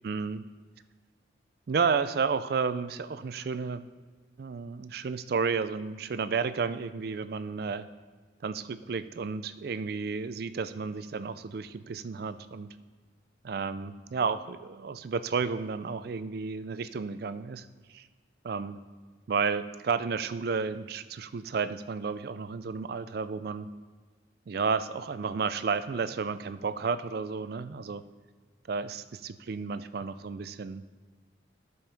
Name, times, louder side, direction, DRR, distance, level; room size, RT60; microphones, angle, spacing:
voice 1, 0.0-0.4 1.7-3.9 4.4-7.9 8.4-12.7 13.4-18.1 18.4-18.8 19.3-23.7 24.5-28.0 28.7-30.8, right 5 dB, 55° right, 12 dB, 0.4 m, -32 dB
14.5 x 5.4 x 3.5 m, 1.4 s
head